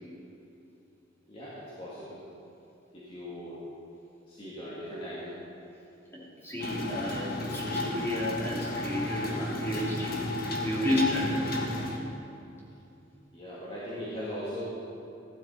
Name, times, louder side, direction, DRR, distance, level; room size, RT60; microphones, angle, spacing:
voice 1, 1.3-2.2 2.9-3.7 4.3-5.4 13.3-14.6, equal, 30° left, -9 dB, 2.6 m, -39 dB
voice 2, 6.1-10.2 10.6-11.6, left 1 dB, 15° left, -6 dB, 2.9 m, -32 dB
sound 1, 6.6-12.0, left 1 dB, 55° left, 1.7 m, -33 dB
16.0 x 12.0 x 4.4 m, 2.8 s
head